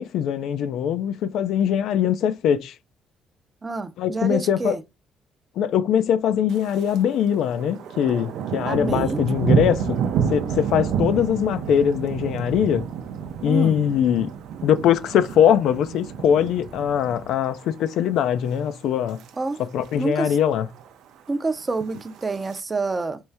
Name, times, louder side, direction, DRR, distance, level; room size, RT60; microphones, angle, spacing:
voice 1, 0.0-2.7 4.0-4.8 5.6-10.0 10.3-12.9 13.4-14.3 14.6-19.2 19.6-20.7, left 9 dB, 75° left, 0.5 m, -22 dB
voice 2, 3.6-4.8 8.7-9.2 13.5-13.8 19.4-19.6 20.0-20.4 21.3-23.2, right 3 dB, 20° right, 0.5 m, -27 dB
Thunder, 6.5-7.0 7.3-17.7 18.1-18.4 18.9-19.3 19.6-19.7 19.8-19.9 20.3-20.9 21.7-22.6, right 7 dB, 90° right, 0.5 m, -29 dB
4.5 x 2.7 x 3.4 m
cardioid pair, 155°, 0 cm